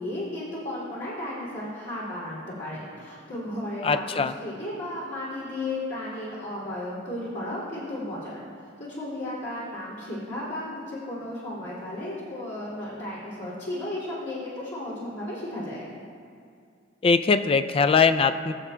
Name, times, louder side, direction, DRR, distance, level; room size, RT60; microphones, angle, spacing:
voice 1, 0.0-8.4 8.9-15.8, left 1 dB, 60° left, -9 dB, 2.6 m, -34 dB
voice 2, 3.8-4.3 17.0-18.5, left 5 dB, 30° left, 10 dB, 0.3 m, -21 dB
21.5 x 7.2 x 2.2 m, 2.3 s
head